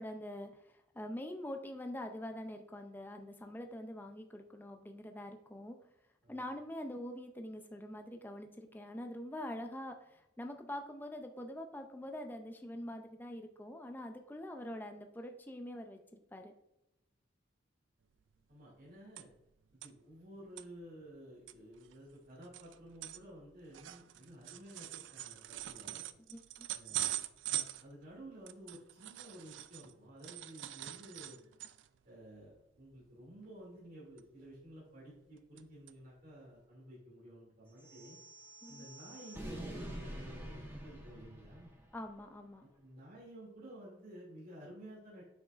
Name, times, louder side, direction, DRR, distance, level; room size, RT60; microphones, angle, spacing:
voice 1, 0.0-5.8 6.3-16.5 26.3-26.7 38.6-38.9 41.9-42.6, left 1 dB, 10° left, 5 dB, 0.4 m, -45 dB
sound 1, 18.2-18.3 18.5-19.5 19.8-19.9 20.4-20.6 21.2-21.3 21.5-29.9 30.2-32.0 32.4-32.6 32.9-33.1 34.2-34.7 35.1-35.6 35.9-36.0 36.6-36.7, right 13 dB, 65° right, 0.3 m, -43 dB
voice 2, 18.5-19.3 19.7-26.0 26.7-27.1 27.5-31.5 32.0-38.2 38.7-41.7 42.6-45.2, right 1 dB, 45° right, -6 dB, 2.6 m, -53 dB
sound 2, 37.8-42.1, right 1 dB, 10° right, 1.0 m, -47 dB
7.9 x 6.2 x 2.5 m, 0.87 s
head